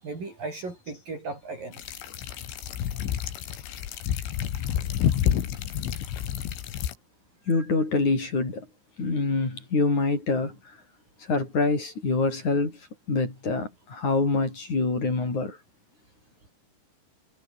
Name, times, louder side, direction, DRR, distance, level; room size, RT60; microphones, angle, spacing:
voice 1, 0.0-1.8 5.7-5.8 7.5-7.7, right 3 dB, 45° right, 8.9 m, -37 dB
sound 1, 1.7-6.9, left 10 dB, 75° left, 5.1 m, -29 dB
voice 2, 7.5-8.6 9.0-10.5 11.3-12.8 13.1-15.6, left 3 dB, 35° left, 9.2 m, -25 dB
omnidirectional pair, 5.7 m